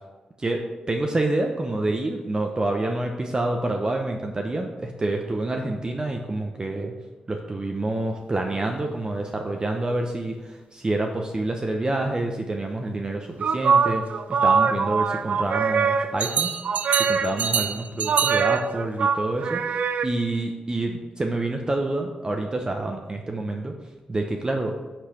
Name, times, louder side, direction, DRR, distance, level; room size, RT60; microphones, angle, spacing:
voice 1, 0.4-6.9 7.3-14.0 14.3-16.5 17.0-19.6 20.0-23.7 24.1-24.8, right 2 dB, 30° right, 2 dB, 0.7 m, -27 dB
sound 1, 13.4-20.1, right 5 dB, 65° right, 0.3 m, -23 dB
6.0 x 3.2 x 5.6 m, 1.2 s
cardioid pair, 60°, 3 cm